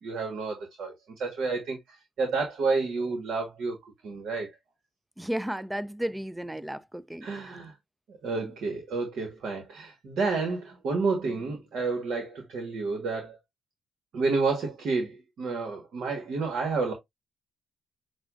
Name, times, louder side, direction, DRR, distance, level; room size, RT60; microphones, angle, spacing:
voice 1, 0.0-4.5 7.2-7.7 8.1-13.4 14.1-16.9, right 4 dB, 70° right, 1.4 m, -30 dB
voice 2, 5.2-7.6 8.4-8.5, right 1 dB, 10° right, 0.4 m, -34 dB
6.5 x 2.4 x 2.5 m
supercardioid pair, 70°, 0 cm